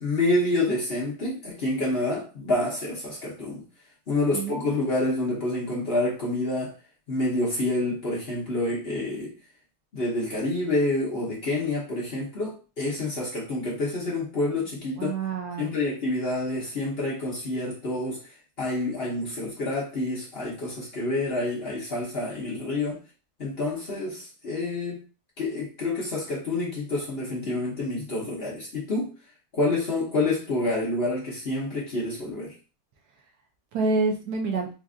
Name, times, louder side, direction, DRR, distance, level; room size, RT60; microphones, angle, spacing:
voice 1, 0.0-3.6 4.1-6.7 7.1-9.3 9.9-15.1 15.6-18.2 18.6-23.0 23.4-25.0 25.4-29.1 29.5-32.5, left 2 dB, 45° left, 1.0 m, -28 dB
voice 2, 4.3-4.7 15.0-15.8 33.7-34.7, right 3 dB, 75° right, 1.3 m, -27 dB
4.1 x 2.4 x 2.4 m
omnidirectional pair, 1.8 m